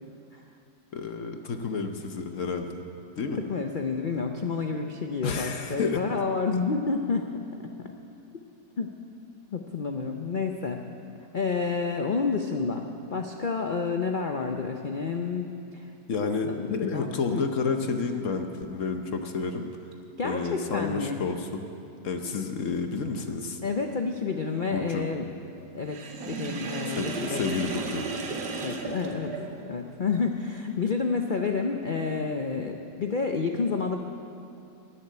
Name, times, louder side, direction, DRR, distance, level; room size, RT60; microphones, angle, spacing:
voice 1, 0.9-2.7 3.2-3.4 5.2-6.0 16.1-19.7 20.2-21.6 22.0-23.6 24.7-25.1 27.0-28.1, left 4 dB, 55° left, 6 dB, 1.0 m, -30 dB
voice 2, 3.3-7.3 7.8-7.9 8.3-8.4 8.8-8.9 9.5-10.8 11.3-15.9 16.4-17.4 20.2-21.2 23.6-25.3 25.7-26.0 26.2-27.6 28.6-34.0, left 4 dB, 75° left, 4 dB, 0.4 m, -29 dB
Sink (filling or washing), 25.9-29.8, right 4 dB, 90° right, 1.7 m, -35 dB
13.5 x 7.5 x 9.8 m, 2.6 s
omnidirectional pair, 1.8 m